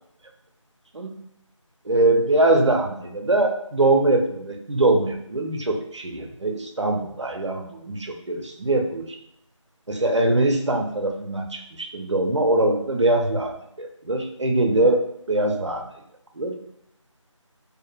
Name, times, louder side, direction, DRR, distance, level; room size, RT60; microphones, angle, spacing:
voice 1, 1.9-9.1 9.9-15.0 15.3-15.9 16.3-16.5, right 2 dB, 60° right, 3 dB, 0.5 m, -22 dB
2.5 x 2.1 x 2.5 m, 0.72 s
figure-of-eight pair, 180°, 17 cm